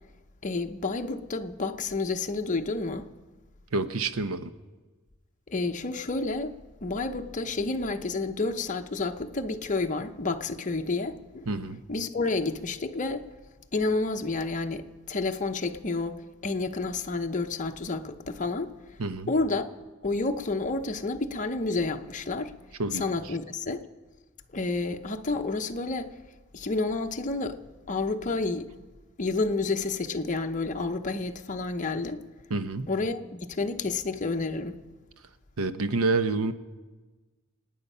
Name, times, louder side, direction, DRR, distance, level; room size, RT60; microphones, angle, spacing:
voice 1, 0.4-3.1 5.5-6.5 6.8-11.6 11.9-13.3 13.7-18.7 19.3-19.7 20.0-22.5 22.9-23.8 24.5-26.1 26.5-27.6 27.9-28.7 29.2-32.2 32.9-34.8, left 3 dB, 35° left, 0.8 m, -30 dB
voice 2, 3.7-4.5 11.5-11.8 19.0-19.3 22.8-23.0 32.5-32.9 35.6-36.5, right 3 dB, 90° right, 0.9 m, -28 dB
27.0 x 9.3 x 5.5 m
head